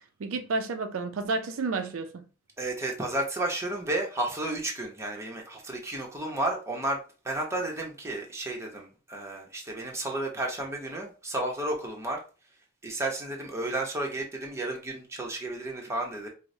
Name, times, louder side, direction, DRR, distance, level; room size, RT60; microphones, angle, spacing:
voice 1, 0.2-2.2, right 3 dB, 75° right, 0.4 m, -31 dB
voice 2, 2.6-12.2 12.8-16.3, right 2 dB, 15° right, 0.8 m, -32 dB
4.5 x 2.1 x 2.6 m
head